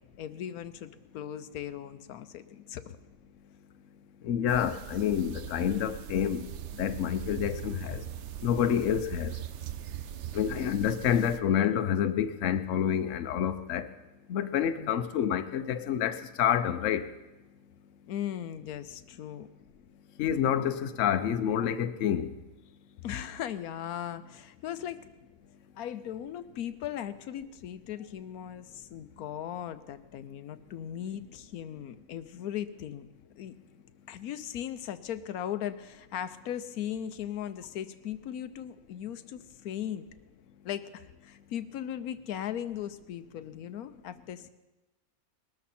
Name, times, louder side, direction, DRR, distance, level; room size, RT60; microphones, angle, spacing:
voice 1, 0.2-3.0 14.8-14.9 18.1-19.5 23.0-25.0 25.8-33.1 33.4-33.5 34.1-40.1 40.6-44.5, left 10 dB, 80° left, 13 dB, 1.2 m, -38 dB
voice 2, 4.2-6.5 6.8-8.0 8.4-9.3 10.3-13.9 14.3-17.1 20.2-22.3, left 9 dB, 65° left, 11 dB, 1.0 m, -28 dB
sound 1, 4.5-11.4, right 11 dB, 60° right, 0.9 m, -40 dB
21.0 x 13.0 x 4.3 m, 1.1 s
omnidirectional pair, 1.5 m